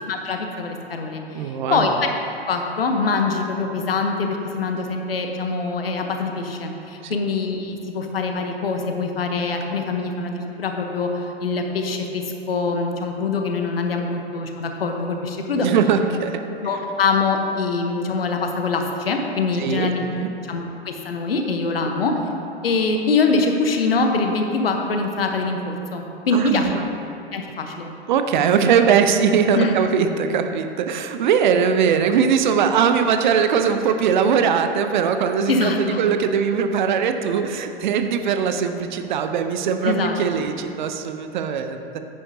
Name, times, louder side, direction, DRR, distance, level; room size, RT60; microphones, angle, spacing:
voice 1, 0.1-1.9 2.5-15.7 16.6-20.0 20.5-22.1 22.6-26.8 27.3-27.9 29.5-29.7 35.5-36.0 39.8-40.1, left 3 dB, 70° left, 3 dB, 1.1 m, -24 dB
voice 2, 1.3-1.8 7.0-7.1 14.0-14.1 15.6-16.4 19.6-20.3 21.8-21.9 26.3-26.8 28.1-42.0, right 7 dB, 50° right, 7 dB, 0.7 m, -21 dB
10.0 x 9.6 x 2.8 m, 2.8 s
figure-of-eight pair, 100°, 31 cm